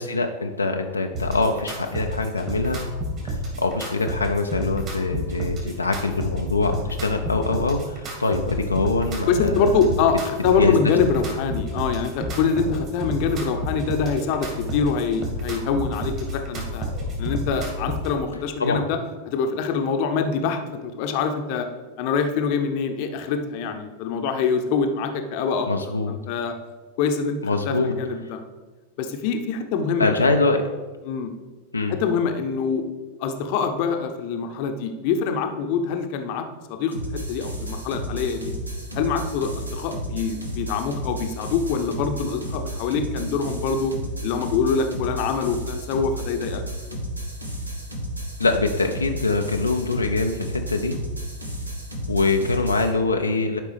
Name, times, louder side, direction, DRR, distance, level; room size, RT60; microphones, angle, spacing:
voice 1, 0.0-2.8 3.2-9.8 10.6-10.8 18.6-18.8 25.6-26.1 27.4-27.9 30.0-30.6 31.7-32.0 48.4-51.0 52.1-53.6, left 3 dB, 80° left, 4 dB, 0.5 m, -24 dB
sound 1, 1.1-18.1, equal, 35° right, 2.1 m, -30 dB
voice 2, 9.3-16.9 17.2-19.0 19.3-21.7 22.0-25.7 26.1-26.5 27.0-27.4 27.6-28.4 29.0-30.2 31.0-31.3 31.9-32.8 33.2-38.4 38.9-43.9 44.2-46.6, left 5 dB, 45° left, 6 dB, 0.8 m, -24 dB
sound 2, 36.9-52.9, equal, 85° right, 1.2 m, -32 dB
11.5 x 5.2 x 3.4 m, 1.3 s
figure-of-eight pair, 90°, 0 cm